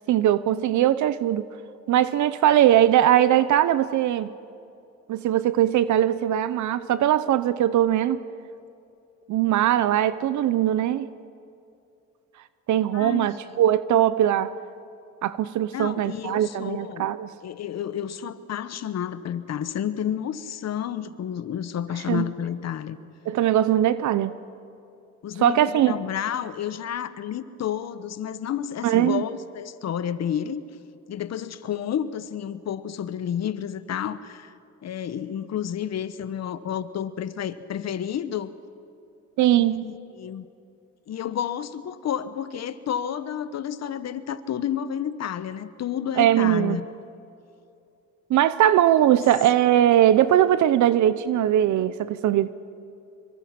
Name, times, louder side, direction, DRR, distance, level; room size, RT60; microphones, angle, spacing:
voice 1, 0.1-1.5 1.9-4.3 5.1-8.2 9.3-11.1 12.7-14.5 15.2-17.3 22.1-22.2 23.3-24.4 25.4-26.0 28.8-29.2 39.4-39.9 46.2-46.8 48.3-52.5, right 11 dB, 75° right, 15 dB, 0.7 m, -20 dB
voice 2, 12.9-13.3 15.7-17.1 17.4-23.0 25.2-30.6 31.1-34.5 34.8-38.5 39.5-40.4 41.1-46.8, left 9 dB, 60° left, 13 dB, 1.1 m, -30 dB
25.5 x 23.0 x 6.0 m, 2.6 s
cardioid pair, 90°, 30 cm